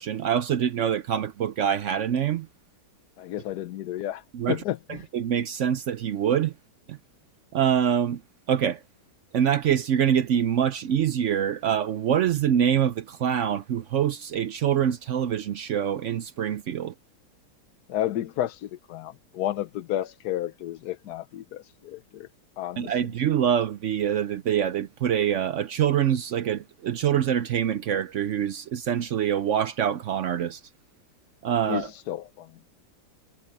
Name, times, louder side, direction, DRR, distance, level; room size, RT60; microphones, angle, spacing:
voice 1, 0.0-2.5 4.3-4.6 4.9-6.5 6.9-7.0 7.5-8.2 8.5-8.8 9.3-16.9 22.8-30.6 31.4-31.9, right 9 dB, 65° right, 0.7 m, -25 dB
voice 2, 3.2-4.8 17.9-22.3 22.6-22.9 31.7-32.5, left 12 dB, 70° left, 1.2 m, -31 dB
omnidirectional pair, 1.9 m